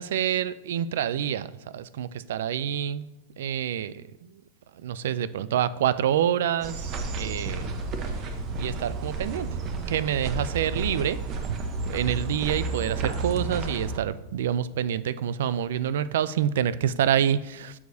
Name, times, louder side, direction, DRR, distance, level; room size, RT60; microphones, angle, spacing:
voice 1, 0.0-1.5 1.7-3.0 3.4-4.0 4.8-6.8 7.2-7.8 8.6-9.5 9.9-11.2 11.9-17.7, right 9 dB, 75° right, 16 dB, 0.3 m, -27 dB
sound 1, 6.6-14.0, right 3 dB, 35° right, 0.9 m, -31 dB
12.5 x 4.8 x 2.7 m, 0.97 s
supercardioid pair, 130°, 0 cm